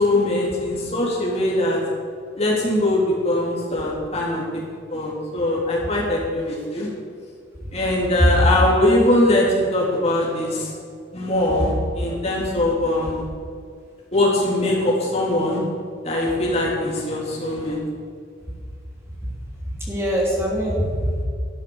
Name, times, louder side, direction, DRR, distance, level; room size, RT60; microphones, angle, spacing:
voice 1, 0.0-1.8 2.4-4.6 4.9-6.9 7.7-10.7 11.1-13.2 14.1-15.6 16.0-17.8, left 1 dB, 35° left, -4 dB, 3.8 m, -21 dB
voice 2, 19.7-21.2, equal, 15° right, -4 dB, 3.1 m, -22 dB
12.5 x 12.0 x 7.3 m, 2.2 s
head